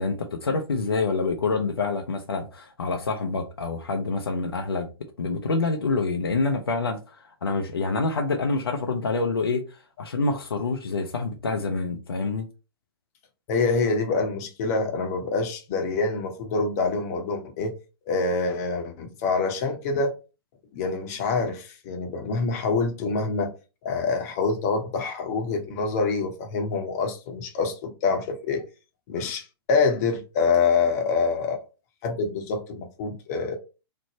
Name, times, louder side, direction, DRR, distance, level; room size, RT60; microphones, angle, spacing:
voice 1, 0.0-4.9 5.2-7.0 7.4-9.6 10.0-12.5, left 3 dB, 75° left, 0.6 m, -26 dB
voice 2, 13.5-17.7 18.1-20.1 20.7-23.5 23.8-28.6 29.1-31.6 32.0-33.6, left 4 dB, 40° left, 0.8 m, -26 dB
3.3 x 2.0 x 4.2 m
figure-of-eight pair, 110°, 13 cm